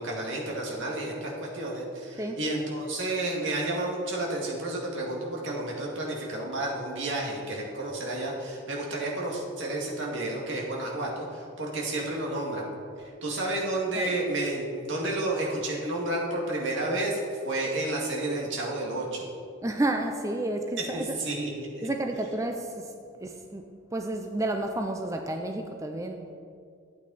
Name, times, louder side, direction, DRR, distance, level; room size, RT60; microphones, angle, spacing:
voice 1, 0.0-12.7 13.0-19.3 20.8-21.9, right 2 dB, 75° right, -2 dB, 2.1 m, -31 dB
voice 2, 19.6-21.1 21.8-26.3, right 1 dB, 15° right, 4 dB, 0.5 m, -31 dB
12.0 x 8.6 x 4.1 m, 2.3 s
head